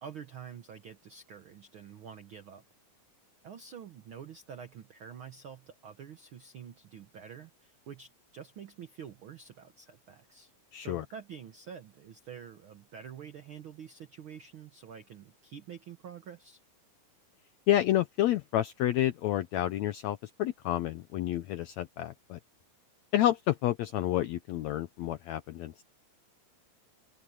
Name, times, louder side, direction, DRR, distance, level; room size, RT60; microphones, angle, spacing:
voice 1, 0.0-2.6 3.4-10.5 10.8-16.6, right 7 dB, 75° right, 1.2 m, -47 dB
voice 2, 10.7-11.0 17.7-22.4 23.1-25.8, left 13 dB, 80° left, 1.6 m, -29 dB
omnidirectional pair, 3.9 m